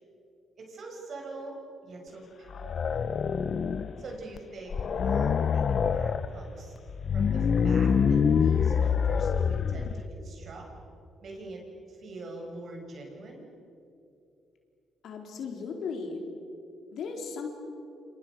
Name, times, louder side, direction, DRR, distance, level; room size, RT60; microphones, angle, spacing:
voice 1, 0.6-3.0 4.0-6.8 7.1-10.7 11.2-11.6 11.9-13.4, right 2 dB, 55° right, 1 dB, 7.2 m, -44 dB
sound 1, 2.5-4.0 4.4-4.5 4.7-6.3 6.9-10.0, left 6 dB, 50° left, 1.0 m, -25 dB
voice 2, 15.0-16.2 16.9-17.5, left 5 dB, 70° left, 3 dB, 4.3 m, -36 dB
28.5 x 27.5 x 6.5 m, 2.7 s
cardioid pair, 90°, 0 cm